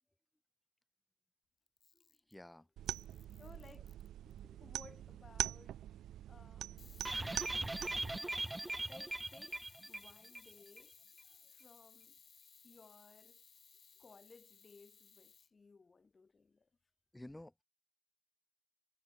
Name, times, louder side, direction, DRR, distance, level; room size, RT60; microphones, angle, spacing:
Camera, 1.7-2.4 2.9-4.4 6.8-15.5, left 7 dB, 45° left, 2.1 m, -62 dB
voice 1, 1.9-2.7 4.3-4.6 11.3-11.5 17.1-17.6, left 1 dB, 5° left, 6.7 m, -54 dB
sound 1, 2.8-8.2, right 12 dB, 80° right, 0.4 m, -43 dB
voice 2, 3.4-3.9 4.6-5.8 6.3-7.0 8.9-11.0 11.5-12.2 12.6-13.4 14.0-16.7, left 4 dB, 25° left, 6.3 m, -61 dB
sound 2, 7.1-10.5 10.8-10.9 11.2-11.3, right 2 dB, 10° right, 0.8 m, -40 dB
cardioid pair, 140°, 0 cm